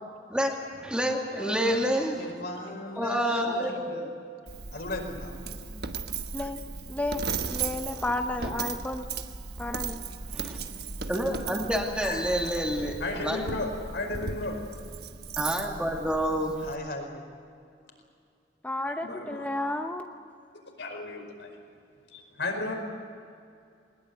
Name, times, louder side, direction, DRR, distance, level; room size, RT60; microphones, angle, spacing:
voice 1, 0.3-2.4 3.0-4.1 10.3-10.6 11.1-13.5 15.4-16.7, equal, 5° right, 0 dB, 2.6 m, -28 dB
voice 2, 1.3-1.8 2.1-4.1 4.7-5.4 12.0-12.3 16.6-17.2, left 2 dB, 60° left, 3 dB, 4.9 m, -37 dB
Coin (dropping), 4.5-16.8, right 5 dB, 65° right, 1.2 m, -36 dB
voice 3, 6.9-7.2 7.5-9.1 9.6-10.0 18.6-20.1, left 1 dB, 10° left, 5 dB, 0.8 m, -32 dB
voice 4, 13.0-14.6 19.0-19.5 20.8-21.5 22.1-22.8, left 2 dB, 90° left, 2 dB, 5.2 m, -34 dB
21.5 x 20.5 x 9.5 m, 2.4 s
head